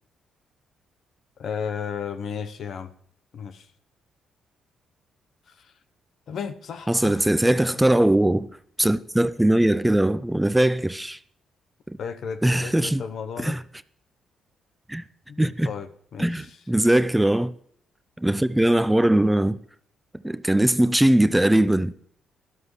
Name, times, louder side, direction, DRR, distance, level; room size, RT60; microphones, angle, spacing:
voice 1, 1.4-2.9 3.3-3.7 5.5-5.7 6.3-7.2 7.7-7.8 12.0-13.6 15.3-16.6, left 7 dB, 60° left, 0.9 m, -34 dB
voice 2, 6.9-8.5 8.8-11.2 11.9-12.0 12.4-13.0 13.4-13.6 14.9-15.0 15.4-15.7 16.2-17.5 18.2-19.6 20.2-21.9, right 1 dB, 10° right, 0.4 m, -20 dB
12.5 x 12.5 x 3.2 m
cardioid pair, 90°, 0 cm